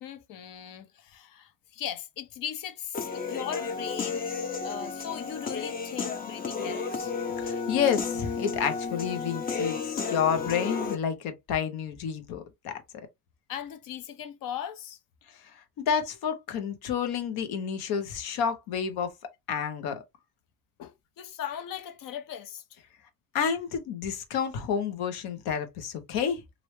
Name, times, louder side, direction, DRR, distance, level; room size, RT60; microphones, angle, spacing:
voice 1, 0.0-4.2 4.6-7.1 13.5-15.0 20.8-22.6, left 9 dB, 65° left, 0.8 m, -38 dB
Human voice / Piano, 2.9-11.0, left 5 dB, 25° left, 0.6 m, -32 dB
voice 2, 7.4-12.7 15.9-19.1 19.5-20.0 23.3-26.4, left 7 dB, 85° left, 1.0 m, -29 dB
3.1 x 2.7 x 3.1 m
cardioid pair, 145°, 36 cm